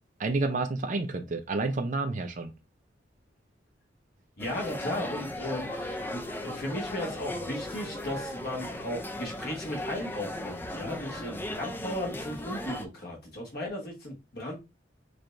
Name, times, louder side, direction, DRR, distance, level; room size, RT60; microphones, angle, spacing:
voice 1, 0.2-2.5, right 3 dB, 40° right, 0.5 m, -29 dB
voice 2, 4.4-14.6, left 1 dB, 55° left, 1.3 m, -36 dB
sound 1, 4.4-12.9, left 1 dB, 10° left, 0.4 m, -37 dB
4.6 x 3.2 x 2.5 m
head